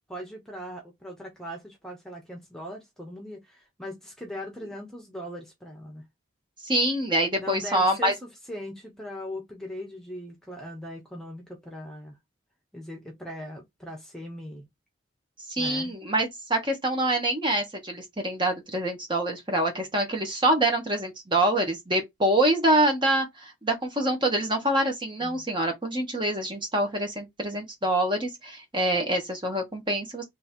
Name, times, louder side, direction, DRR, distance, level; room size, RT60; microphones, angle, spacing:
voice 1, 0.1-6.0 7.4-12.2 12.7-14.7 15.6-16.0 25.2-25.4, equal, 5° left, 1.2 m, -40 dB
voice 2, 6.6-8.1 15.5-30.2, right 1 dB, 25° right, 1.3 m, -25 dB
3.4 x 3.3 x 4.4 m
head